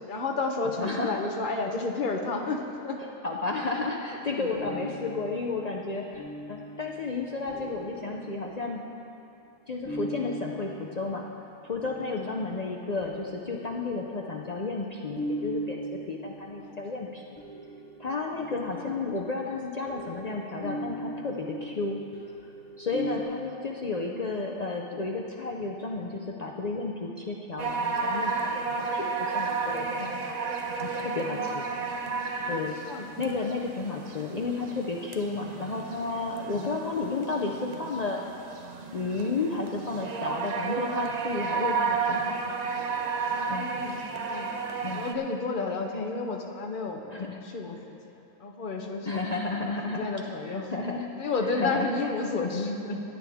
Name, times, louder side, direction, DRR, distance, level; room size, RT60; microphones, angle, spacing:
voice 1, 0.1-3.0 4.3-4.6 7.5-7.6 12.0-12.3 16.6-16.8 18.5-18.9 23.0-23.1 31.1-31.9 32.8-33.1 36.3-36.8 43.4-44.5 44.9-49.2 49.6-50.7 51.2-53.0, left 3 dB, 40° left, 2 dB, 0.9 m, -32 dB
voice 2, 0.8-1.3 3.2-8.9 9.7-11.3 11.6-15.8 16.1-17.4 18.0-22.0 22.8-30.4 30.8-31.7 32.5-32.7 33.2-38.2 38.9-42.6 43.5-43.7 44.8-45.1 47.1-47.4 49.1-50.2 50.5-51.1 51.6-51.9 52.3-52.5, left 3 dB, 75° left, -1 dB, 0.3 m, -32 dB
sound 1, 4.5-9.1 9.8-12.5 13.0-14.5 15.2-23.2, right 1 dB, 5° left, 1.6 m, -39 dB
sound 2, 27.6-45.1, right 4 dB, 55° right, 0.4 m, -32 dB
16.5 x 9.2 x 3.5 m, 2.7 s
omnidirectional pair, 1.6 m